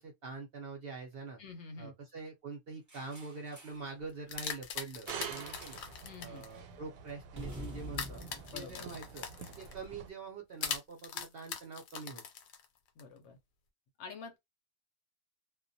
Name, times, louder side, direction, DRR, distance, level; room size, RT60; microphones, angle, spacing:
voice 1, 0.0-1.4 1.8-5.8 6.2-12.2, right 4 dB, 60° right, 0.6 m, -45 dB
voice 2, 1.4-1.9 6.0-6.4 8.5-8.8 13.0-13.4 14.0-14.4, left 4 dB, 65° left, 0.8 m, -47 dB
sound 1, 2.9-3.9 5.6-6.0 6.3-6.5 7.3-9.7, equal, 15° right, 0.6 m, -48 dB
sound 2, 4.0-6.5 7.9-9.8 10.6-13.0, left 7 dB, 85° left, 1.1 m, -41 dB
sound 3, 5.1-10.1, right 7 dB, 85° right, 1.0 m, -47 dB
2.3 x 2.1 x 2.5 m
omnidirectional pair, 1.4 m